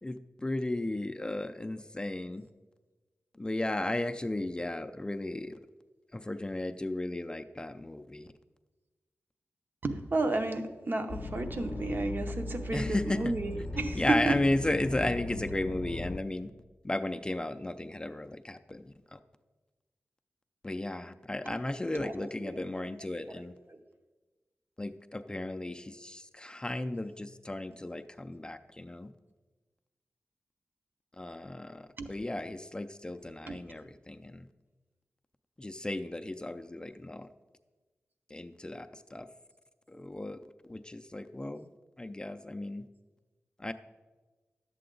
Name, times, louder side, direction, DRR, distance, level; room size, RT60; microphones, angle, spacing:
voice 1, 0.0-2.5 3.3-5.5 6.1-8.3 12.7-16.5 16.8-19.2 20.6-23.5 24.8-29.1 31.1-34.5 35.6-37.3 38.3-39.3 39.9-41.7 42.0-42.9 43.6-43.7, left 1 dB, 20° left, 8 dB, 0.4 m, -35 dB
voice 2, 9.8-14.5 21.4-21.6 21.9-22.7 23.0-23.5 32.0-32.1 33.5-33.6, right 2 dB, 45° right, 6 dB, 0.8 m, -32 dB
sound 1, 11.1-16.2, left 2 dB, 45° left, 0.7 m, -38 dB
11.0 x 7.7 x 3.8 m, 1.2 s
wide cardioid pair, 75°, 5 cm